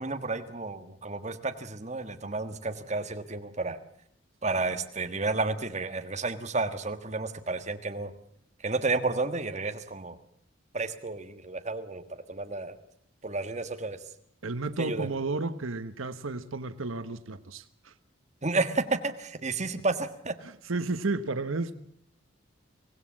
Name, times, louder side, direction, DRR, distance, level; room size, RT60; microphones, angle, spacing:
voice 1, 0.0-3.8 4.4-8.1 8.6-10.2 10.7-12.0 12.3-12.8 13.2-14.0 14.8-15.1 18.4-20.3, right 3 dB, 35° right, 1.5 m, -31 dB
voice 2, 14.4-17.9 20.4-21.7, right 3 dB, 85° right, 1.1 m, -32 dB
24.5 x 17.5 x 7.4 m
head